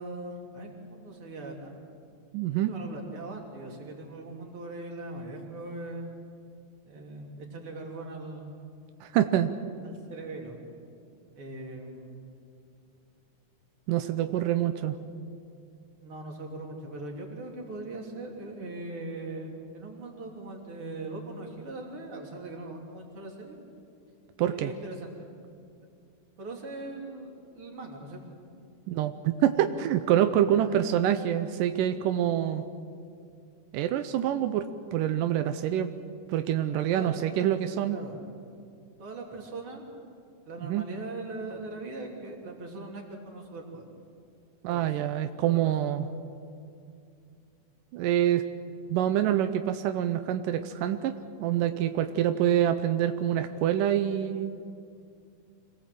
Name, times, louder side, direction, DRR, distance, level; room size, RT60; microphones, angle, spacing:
voice 1, 0.0-1.8 2.7-6.1 6.9-8.5 9.8-10.6 11.4-12.2 16.0-23.6 24.5-25.3 26.4-28.2 30.5-30.8 36.9-37.2 37.9-38.2 39.0-39.8 40.5-43.9 44.7-45.0 45.5-45.7, right 2 dB, 40° right, 0 dB, 3.7 m, -40 dB
voice 2, 2.3-2.7 9.0-9.5 13.9-15.0 24.4-24.7 28.9-32.6 33.7-35.9 36.3-38.0 40.6-40.8 44.6-46.1 47.9-48.4 48.9-51.1 51.4-54.6, right 11 dB, 90° right, 9 dB, 2.4 m, -26 dB
26.0 x 18.5 x 7.7 m, 2.4 s
omnidirectional pair, 3.7 m